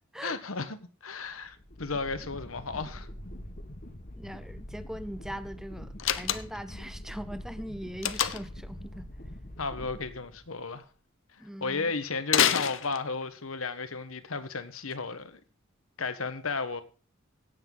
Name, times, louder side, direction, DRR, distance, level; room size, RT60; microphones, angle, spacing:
voice 1, 0.2-3.1 9.6-10.8 11.3-15.4 16.0-16.8, left 4 dB, 80° left, 1.3 m, -34 dB
sound 1, 1.2-10.7, left 1 dB, 45° left, 1.5 m, -44 dB
voice 2, 4.2-9.1 11.4-11.9, equal, ahead, 0.7 m, -41 dB
Slam, 6.0-6.7 8.0-8.6 12.3-13.4, left 9 dB, 65° left, 0.8 m, -27 dB
17.0 x 8.1 x 3.9 m
head